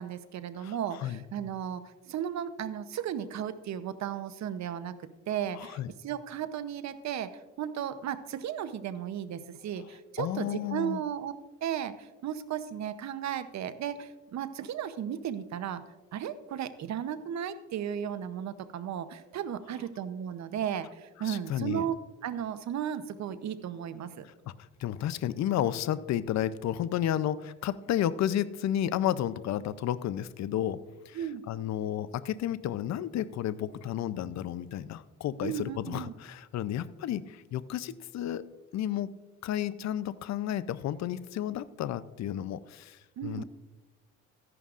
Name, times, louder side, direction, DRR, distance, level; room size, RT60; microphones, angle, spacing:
voice 1, 0.0-7.3 7.6-11.3 11.6-15.8 16.1-22.0 22.2-24.2 31.1-31.4 35.4-36.1 43.2-43.4, right 9 dB, 65° right, 12 dB, 0.8 m, -35 dB
voice 2, 0.6-1.2 5.5-5.9 10.2-11.0 21.2-21.8 24.8-30.8 31.1-38.4 38.7-43.4, left 11 dB, 65° left, 16 dB, 0.5 m, -32 dB
14.0 x 11.0 x 2.5 m, 1.2 s
cardioid pair, 90°, 30 cm